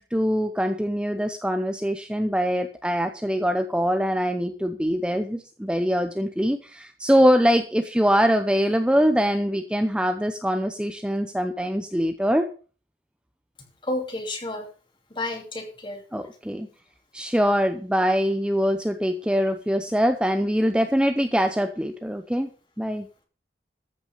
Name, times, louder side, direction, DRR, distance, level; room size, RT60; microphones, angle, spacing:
voice 1, 0.1-12.5 16.1-16.7 17.1-22.5 22.8-23.1, equal, 5° right, 7 dB, 0.7 m, -23 dB
voice 2, 13.8-14.7 15.1-16.0, left 1 dB, 30° left, 4 dB, 2.7 m, -31 dB
14.0 x 6.2 x 6.7 m, 0.38 s
head